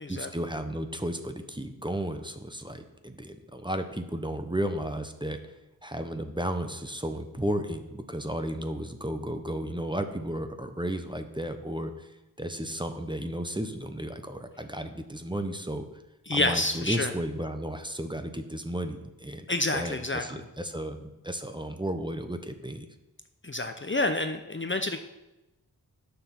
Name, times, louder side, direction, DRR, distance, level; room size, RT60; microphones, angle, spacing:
voice 1, 0.1-5.4 5.8-12.1 12.4-15.8 16.3-19.5 19.7-22.9, right 1 dB, 10° right, 7 dB, 0.8 m, -33 dB
voice 2, 16.3-17.1 19.5-20.4 23.4-25.0, left 2 dB, 30° left, 7 dB, 0.7 m, -28 dB
9.2 x 6.8 x 5.9 m, 0.99 s
wide cardioid pair, 50°, 38 cm